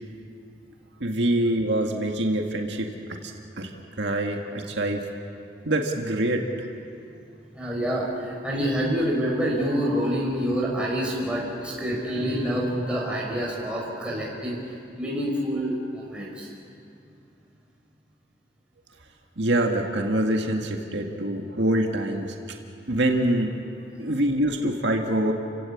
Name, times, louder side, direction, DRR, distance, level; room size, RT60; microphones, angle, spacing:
voice 1, 1.0-3.7 4.0-5.1 5.7-6.5 19.4-22.4 22.9-23.6 24.0-25.3, right 1 dB, 80° right, 2 dB, 1.9 m, -25 dB
voice 2, 7.5-16.5, equal, 5° right, -4 dB, 5.5 m, -27 dB
sound 1, 9.5-9.9 11.9-12.5 12.8-13.6, equal, 25° left, 7.9 m, -43 dB
29.5 x 16.5 x 8.6 m, 2.6 s
head